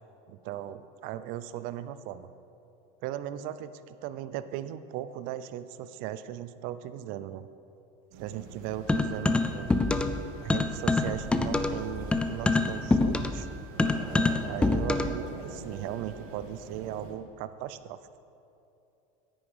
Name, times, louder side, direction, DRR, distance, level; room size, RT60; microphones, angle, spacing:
voice 1, 0.3-2.3 3.0-7.5 8.2-9.7 10.4-13.5 14.5-18.0, right 11 dB, 55° right, 13 dB, 0.5 m, -38 dB
sound 1, 8.1-17.1, right 3 dB, 80° right, 1.9 m, -44 dB
sound 2, 8.9-10.2 10.5-15.2, left 3 dB, 5° left, 0.3 m, -25 dB
10.0 x 9.3 x 5.4 m, 2.8 s
cardioid pair, 160°, 18 cm